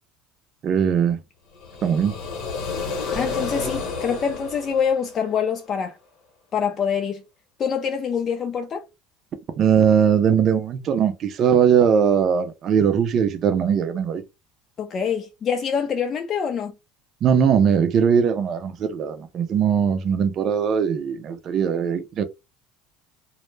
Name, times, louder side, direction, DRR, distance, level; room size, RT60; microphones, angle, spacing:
voice 1, 0.6-1.2 1.8-2.1 9.6-14.2 17.2-22.2, right 7 dB, 45° right, 0.5 m, -20 dB
sound 1, 1.5-5.6, left 4 dB, 65° left, 0.9 m, -30 dB
voice 2, 3.1-6.0 6.5-7.2 7.6-8.8 14.8-16.7, left 7 dB, 40° left, 0.5 m, -25 dB
2.1 x 2.0 x 3.1 m
supercardioid pair, 90°, 0 cm